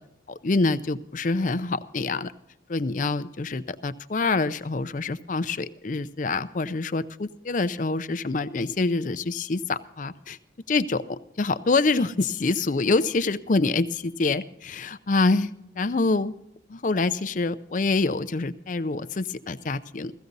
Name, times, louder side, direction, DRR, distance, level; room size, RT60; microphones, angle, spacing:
voice 1, 0.3-2.3 2.7-10.4 10.7-15.5 15.8-16.3 16.7-20.1, left 3 dB, 45° left, 13 dB, 0.5 m, -26 dB
16.5 x 15.0 x 4.0 m, 0.78 s
head